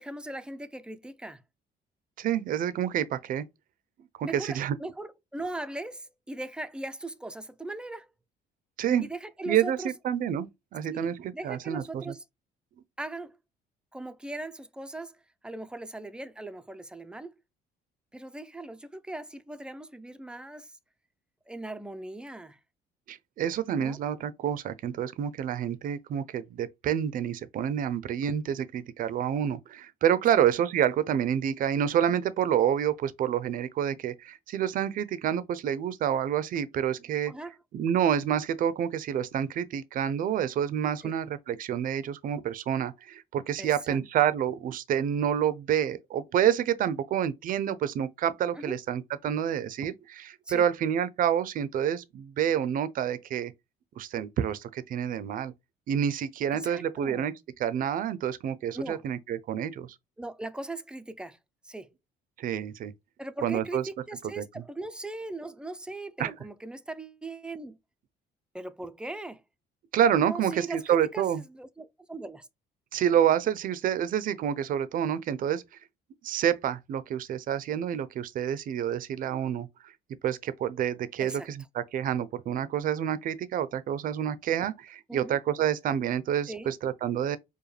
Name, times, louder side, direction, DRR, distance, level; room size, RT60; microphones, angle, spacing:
voice 1, 0.0-1.4 4.2-8.1 9.0-9.9 10.9-12.2 13.0-13.4 13.9-15.2 15.4-17.3 18.1-20.8 21.5-22.6 23.8-24.0 30.3-30.5 37.3-37.5 41.0-41.1 43.6-44.0 48.5-48.8 50.5-50.6 56.5-57.3 58.7-59.1 60.2-61.4 61.6-61.9 63.2-67.8 68.5-69.4 70.2-72.5 81.2-81.5 85.1-85.4 86.5-86.7, right 2 dB, 5° right, 0.4 m, -39 dB
voice 2, 2.2-3.4 4.2-4.8 8.8-9.1 9.5-12.1 23.1-37.3 37.7-53.5 54.0-55.5 55.9-57.3 57.6-59.9 62.4-62.9 63.4-63.8 64.4-64.5 66.2-66.3 69.9-71.4 72.9-75.6 76.2-79.9 80.2-87.4, right 9 dB, 55° right, 0.5 m, -28 dB
4.9 x 2.2 x 3.2 m
cardioid pair, 110°, 17 cm